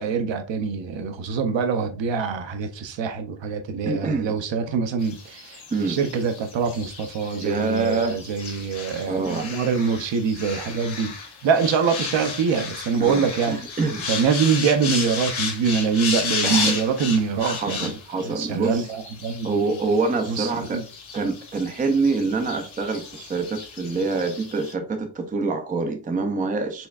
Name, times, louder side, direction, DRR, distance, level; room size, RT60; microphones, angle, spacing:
voice 1, 0.0-5.6 5.9-11.1 11.4-13.6 14.0-17.9 18.2-19.6 20.3-20.8, right 6 dB, 70° right, 0.7 m, -24 dB
voice 2, 3.8-4.3 5.7-6.0 7.4-8.2 9.1-9.5 13.0-14.0 16.4-16.8 17.4-18.9 19.4-20.8 21.1-26.9, right 3 dB, 20° right, 0.4 m, -26 dB
sound 1, 5.0-24.7, left 5 dB, 80° left, 1.4 m, -33 dB
4.4 x 3.3 x 2.3 m
wide cardioid pair, 160°, 46 cm